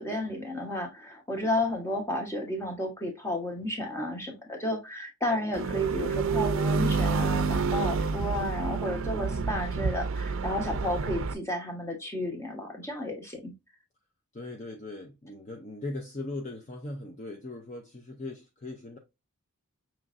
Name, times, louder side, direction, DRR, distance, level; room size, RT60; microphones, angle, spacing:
voice 1, 0.0-13.5, left 1 dB, 10° left, 1.1 m, -32 dB
sound 1, 5.5-11.3, right 4 dB, 60° right, 0.5 m, -28 dB
voice 2, 14.3-19.0, left 2 dB, 35° left, 0.6 m, -39 dB
5.9 x 3.1 x 2.5 m
head